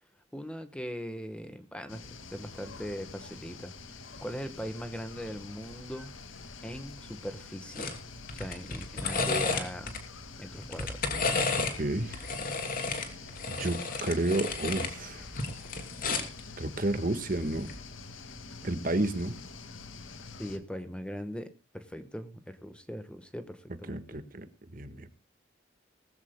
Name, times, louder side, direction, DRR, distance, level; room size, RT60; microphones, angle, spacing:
voice 1, 0.3-3.7 4.2-6.1 6.6-8.0 8.3-10.0 10.4-11.0 20.4-24.0, equal, 5° left, 9 dB, 1.2 m, -40 dB
sound 1, 1.9-20.6, left 4 dB, 85° left, 2.0 m, -47 dB
sound 2, 7.7-8.0 8.3-10.0 10.6-11.8 12.1-14.9 15.3-16.4 17.6-17.8, left 4 dB, 45° left, 2.9 m, -32 dB
voice 2, 11.8-12.3 13.1-13.2 13.5-15.3 16.6-17.7 18.6-19.3 23.9-25.1, right 2 dB, 45° right, 10 dB, 1.5 m, -31 dB
20.0 x 15.0 x 2.2 m, 0.29 s
head